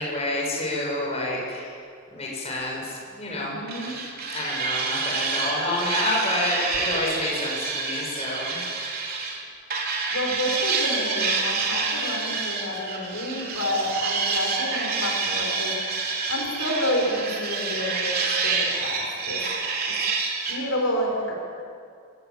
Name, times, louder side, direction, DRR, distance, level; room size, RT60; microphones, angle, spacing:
voice 1, 0.0-1.7 2.1-3.6 4.3-8.6, left 1 dB, 30° left, -2 dB, 7.0 m, -28 dB
voice 2, 3.3-4.0 6.6-6.7 10.1-15.8 16.3-19.4 19.8-19.9 20.5-21.3, equal, 75° left, 0 dB, 5.4 m, -29 dB
sound 1, 3.7-9.4 9.7-20.6, right 4 dB, 45° right, 4.1 m, -28 dB
27.5 x 20.5 x 8.8 m, 2.3 s
head